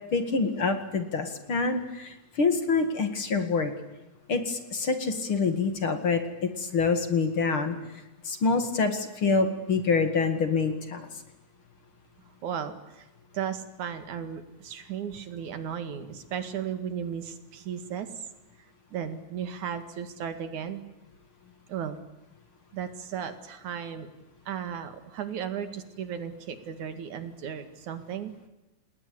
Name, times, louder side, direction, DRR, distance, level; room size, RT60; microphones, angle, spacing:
voice 1, 0.1-3.7 4.3-7.7 8.2-11.1, left 4 dB, 45° left, 7 dB, 2.8 m, -26 dB
voice 2, 12.4-13.1 13.3-18.1 18.9-20.8 21.7-22.0 22.7-24.1 24.5-28.3, right 8 dB, 75° right, 9 dB, 3.4 m, -35 dB
29.0 x 20.5 x 8.7 m, 1.0 s
omnidirectional pair, 3.4 m